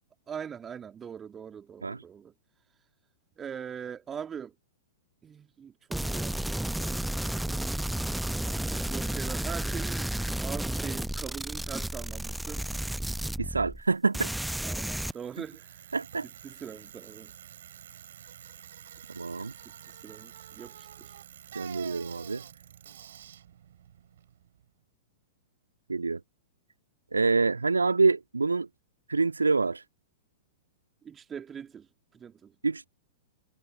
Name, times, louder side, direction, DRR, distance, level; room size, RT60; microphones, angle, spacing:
voice 1, 0.3-2.3 3.4-4.5 5.2-6.5 6.9-7.3 8.4-10.1 10.4-12.6 14.6-15.9 16.4-17.3 19.9-21.1 31.0-32.5, right 7 dB, 20° right, 2.4 m, -42 dB
sound 1, 5.9-13.9 14.1-15.1, right 1 dB, ahead, 0.9 m, -32 dB
voice 2, 13.4-14.3 15.9-16.3 19.1-19.5 21.5-22.4 25.9-26.2 27.1-28.7 29.1-29.8 32.6-32.9, right 4 dB, 75° right, 1.9 m, -26 dB
Bicycle, 14.8-24.7, right 10 dB, 60° right, 3.9 m, -48 dB
figure-of-eight pair, 100°, 0 cm